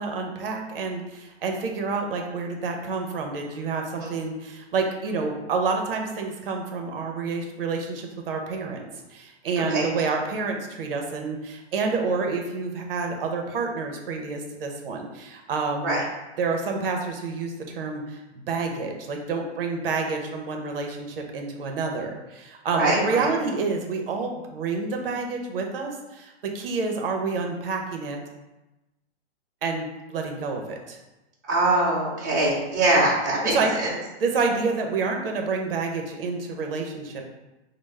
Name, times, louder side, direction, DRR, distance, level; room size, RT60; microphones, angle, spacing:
voice 1, 0.0-8.8 9.1-16.0 16.4-18.2 18.5-28.2 29.6-31.0 33.4-33.7 34.2-37.2, right 4 dB, 55° right, 2 dB, 0.7 m, -28 dB
voice 2, 9.7-10.1 15.8-16.0 22.7-23.3 31.4-33.9, right 2 dB, 20° right, -7 dB, 0.3 m, -23 dB
4.9 x 2.0 x 3.2 m, 1.0 s
hypercardioid pair, 170°, 35 cm